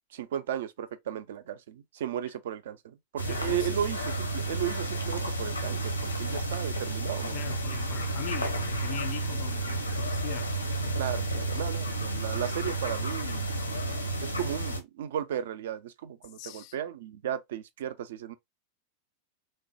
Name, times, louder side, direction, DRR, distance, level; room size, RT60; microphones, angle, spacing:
voice 1, 0.1-7.4 11.0-13.4 14.2-18.3, right 10 dB, 60° right, 0.3 m, -35 dB
sound 1, 3.2-14.8, right 2 dB, 85° left, 0.6 m, -31 dB
voice 2, 3.3-3.8 7.3-10.5 16.4-16.8, left 12 dB, 45° left, 0.4 m, -40 dB
3.1 x 2.1 x 2.6 m
figure-of-eight pair, 90°, 0 cm